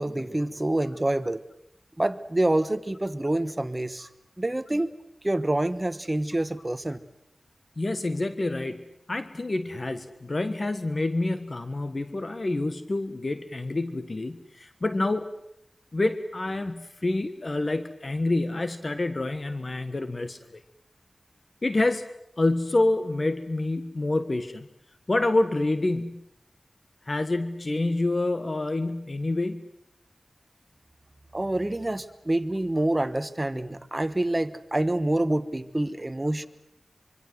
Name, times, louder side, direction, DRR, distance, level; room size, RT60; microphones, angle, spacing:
voice 1, 0.0-1.4 2.0-4.1 4.4-4.9 5.2-7.0 31.3-36.5, right 1 dB, 25° right, 13 dB, 1.2 m, -27 dB
voice 2, 7.8-15.3 15.9-20.6 21.6-22.0 22.4-24.7 25.1-26.2 27.1-29.7, left 2 dB, 50° left, 11 dB, 1.5 m, -27 dB
25.5 x 25.0 x 7.9 m, 0.78 s
wide cardioid pair, 60°, 0 cm